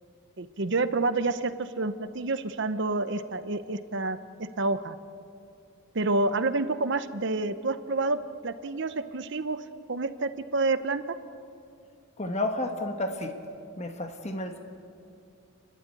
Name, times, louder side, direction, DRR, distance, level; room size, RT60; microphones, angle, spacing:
voice 1, 0.4-5.0 5.9-8.2 8.4-9.6 9.9-11.1, right 3 dB, 55° right, 11 dB, 0.8 m, -28 dB
voice 2, 12.2-13.3 13.8-14.6, left 2 dB, 30° left, 5 dB, 1.3 m, -31 dB
29.5 x 12.0 x 9.0 m, 2.5 s
head